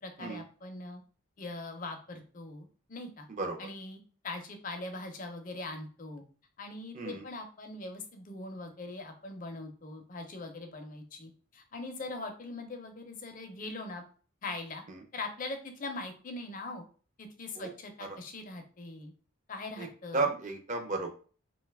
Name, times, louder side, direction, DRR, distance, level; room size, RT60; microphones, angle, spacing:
voice 1, 0.0-1.0 1.4-3.2 3.6-6.2 6.6-14.0 14.4-14.8 15.1-16.8 17.2-19.1 19.5-20.3, left 2 dB, 40° left, 5 dB, 0.5 m, -41 dB
voice 2, 20.1-21.1, right 3 dB, 35° right, 4 dB, 0.4 m, -33 dB
2.6 x 2.2 x 3.3 m, 0.40 s
head